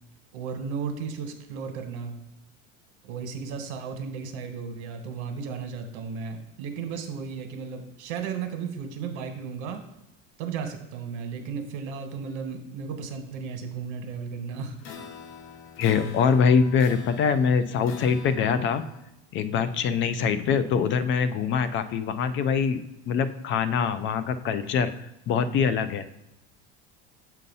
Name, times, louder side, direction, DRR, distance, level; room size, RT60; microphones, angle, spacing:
voice 1, 0.3-2.1 3.0-9.8 10.4-14.8, right 6 dB, 80° right, 5 dB, 1.2 m, -34 dB
sound 1, 14.8-19.0, left 6 dB, 90° left, 1.0 m, -43 dB
voice 2, 15.8-18.8 19.3-24.9 25.3-26.0, left 6 dB, 35° left, 12 dB, 0.4 m, -24 dB
7.4 x 2.7 x 5.4 m, 0.88 s
supercardioid pair, 130°, 34 cm